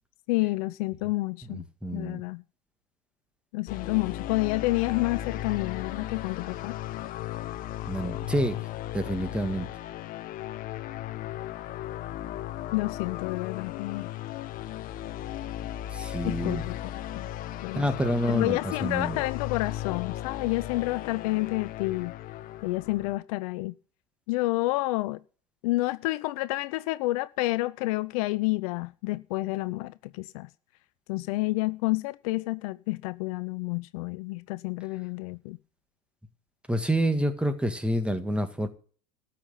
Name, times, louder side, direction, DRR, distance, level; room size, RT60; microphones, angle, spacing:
voice 1, 0.3-1.7 1.9-2.4 3.5-6.8 12.7-14.1 16.2-17.3 17.6-17.9 18.3-22.2 22.6-23.8 24.3-25.2 25.6-30.5 31.1-35.6, left 21 dB, 60° left, 0.6 m, -29 dB
voice 2, 1.5-2.2 7.9-8.6 8.9-9.7 15.9-16.6 17.7-19.2 36.7-38.7, equal, 5° right, 1.9 m, -28 dB
sound 1, 3.7-23.2, left 13 dB, 45° left, 1.0 m, -36 dB
13.5 x 5.8 x 8.4 m
hypercardioid pair, 90°, 21 cm